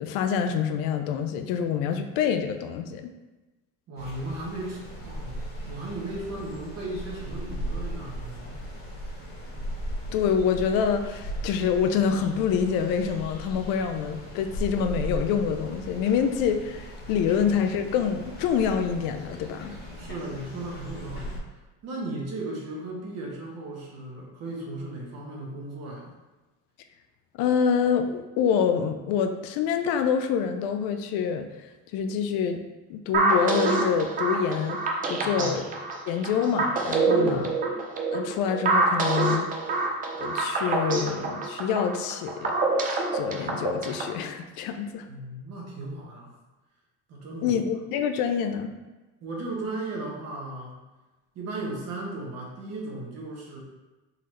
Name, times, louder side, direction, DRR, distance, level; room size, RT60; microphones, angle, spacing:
voice 1, 0.0-3.1 10.1-19.7 27.4-31.5 31.9-32.6 32.9-34.8 35.1-35.6 36.1-37.5 38.1-39.5 40.2-42.5 43.1-45.1 47.4-48.7, left 7 dB, 60° left, 7 dB, 0.5 m, -26 dB
voice 2, 3.9-8.6 17.2-17.3 20.0-26.1 35.2-35.6 37.1-37.5 45.1-46.3 47.1-47.6 49.2-50.8 51.3-53.6, right 2 dB, 40° right, -2 dB, 1.1 m, -36 dB
sound 1, 4.0-21.4, equal, 25° left, 1.1 m, -38 dB
sound 2, 33.1-44.2, right 3 dB, 20° right, 0.4 m, -26 dB
4.2 x 4.0 x 3.1 m, 1.1 s
cardioid pair, 155°, 40 cm